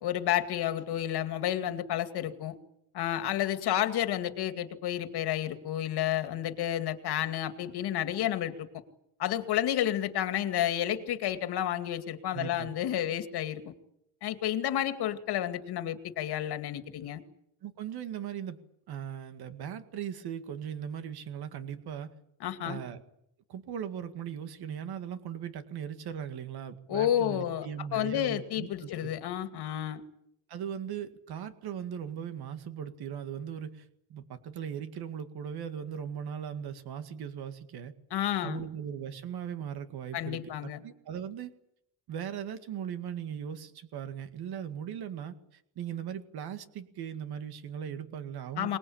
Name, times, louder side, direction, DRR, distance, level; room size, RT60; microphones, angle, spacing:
voice 1, 0.0-2.6 2.9-8.7 9.2-13.7 14.2-17.2 22.4-22.8 26.9-27.7 27.9-30.0 38.1-38.7 40.1-40.8 48.6-48.8, left 11 dB, 80° left, 8 dB, 2.4 m, -31 dB
voice 2, 12.3-12.7 17.6-18.6 18.9-22.1 22.6-23.0 23.5-29.1 30.5-37.9 38.4-41.5 42.1-48.8, right 8 dB, 75° right, 9 dB, 2.1 m, -39 dB
25.0 x 20.5 x 8.7 m, 0.77 s
cardioid pair, 170°, 38 cm